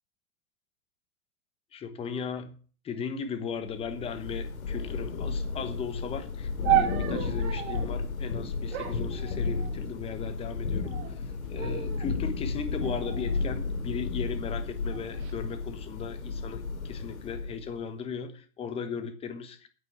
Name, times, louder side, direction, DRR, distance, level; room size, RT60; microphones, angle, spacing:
voice 1, 1.7-2.5 2.8-10.9 11.5-19.7, left 6 dB, 15° left, 1.1 m, -37 dB
Thunder / Rain, 3.7-17.8, left 4 dB, 65° left, 3.1 m, -33 dB
sound 1, 6.6-7.9 8.7-9.9 10.7-11.2 11.6-12.1 12.8-14.1 14.9-15.3, right 14 dB, 45° right, 2.6 m, -32 dB
9.4 x 9.2 x 6.9 m
hypercardioid pair, 145°, 45 cm